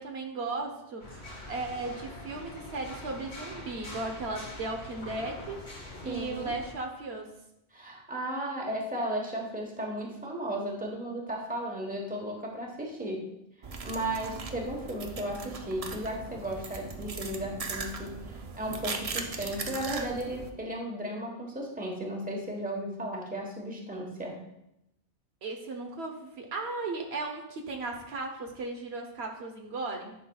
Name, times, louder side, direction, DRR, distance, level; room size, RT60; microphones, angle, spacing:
voice 1, 0.0-7.3 25.4-30.1, right 3 dB, 70° right, 3 dB, 1.1 m, -36 dB
sound 1, 1.0-6.7, left 1 dB, 80° left, 1.8 m, -44 dB
voice 2, 6.0-6.5 7.7-13.3 13.8-24.4, right 1 dB, 10° right, -1 dB, 1.1 m, -35 dB
sound 2, 13.6-20.5, right 4 dB, 40° right, 0.6 m, -39 dB
11.0 x 5.8 x 2.3 m, 0.83 s
omnidirectional pair, 1.1 m